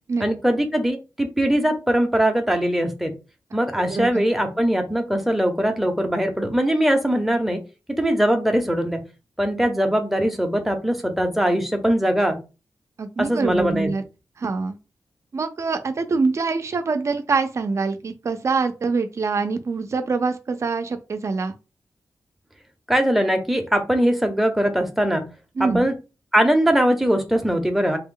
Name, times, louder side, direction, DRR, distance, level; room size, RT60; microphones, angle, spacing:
voice 1, 0.2-3.1 3.5-7.6 8.0-9.0 9.4-12.4 13.2-13.9 22.9-25.3 25.7-25.9 26.3-28.0, equal, ahead, 4 dB, 0.6 m, -21 dB
voice 2, 3.9-4.2 13.0-14.0 14.4-14.8 15.3-21.5 25.6-25.9, right 4 dB, 45° right, 8 dB, 0.5 m, -24 dB
3.4 x 2.1 x 3.7 m, 0.30 s
wide cardioid pair, 140°, 7 cm